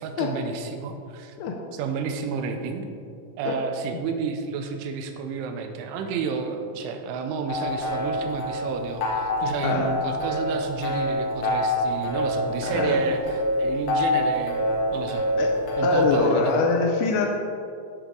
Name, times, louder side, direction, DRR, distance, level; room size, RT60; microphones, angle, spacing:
voice 1, 0.0-1.4 1.7-2.9 3.4-15.3 15.8-16.6, right 5 dB, 90° right, 6 dB, 3.2 m, -31 dB
sound 1, 7.5-16.2, left 1 dB, 65° left, 2.8 m, -26 dB
voice 2, 12.6-13.0 15.4-15.5 15.8-17.4, left 4 dB, 85° left, 1 dB, 2.6 m, -23 dB
10.0 x 7.2 x 3.8 m, 2.5 s
omnidirectional pair, 5.3 m